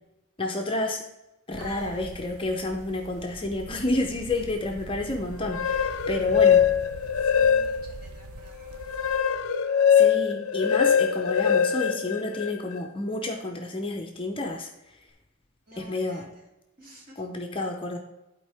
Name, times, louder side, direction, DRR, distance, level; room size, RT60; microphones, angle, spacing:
voice 1, 0.4-1.0 1.5-6.7 9.9-15.0 15.8-16.3 17.2-18.0, left 2 dB, 25° left, 3 dB, 0.6 m, -30 dB
sound 1, 1.5-9.2, right 3 dB, 75° right, 0.6 m, -43 dB
voice 2, 1.6-2.1 4.3-4.5 6.0-6.1 7.2-9.1 15.7-16.5 16.8-17.2, equal, 40° right, -3 dB, 2.3 m, -49 dB
sound 2, 5.3-8.0 8.5-12.8, left 7 dB, 65° left, 0.6 m, -22 dB
11.5 x 4.6 x 3.4 m, 0.98 s
head